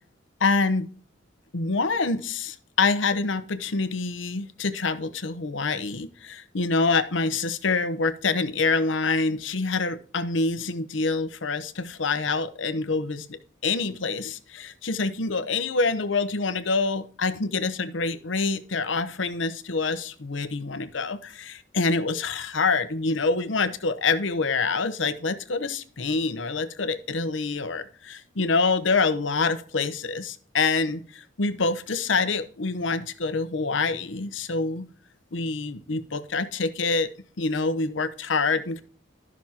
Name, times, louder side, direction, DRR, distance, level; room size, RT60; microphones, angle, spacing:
voice 1, 0.4-0.9 1.5-34.9 35.3-37.1 37.4-38.8, left 4 dB, 75° left, 11 dB, 0.8 m, -26 dB
12.5 x 6.1 x 2.9 m, 0.43 s
head